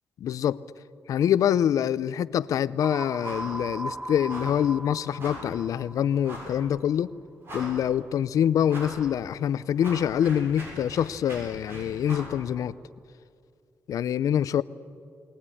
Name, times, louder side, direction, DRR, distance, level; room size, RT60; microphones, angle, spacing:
voice 1, 0.2-0.6 1.1-7.1 7.5-12.7 13.9-14.6, left 9 dB, 85° left, 0.5 m, -25 dB
sound 1, 2.8-6.7, right 1 dB, 20° right, 0.9 m, -38 dB
sound 2, 3.2-3.6 3.8-4.0 4.3-4.6 5.2-5.5 6.2-6.6 7.1-7.2 7.4-8.0 8.7-9.0 9.4-12.4, right 1 dB, 45° right, 7.0 m, -40 dB
22.5 x 18.5 x 9.9 m
wide cardioid pair, 145°, 6 cm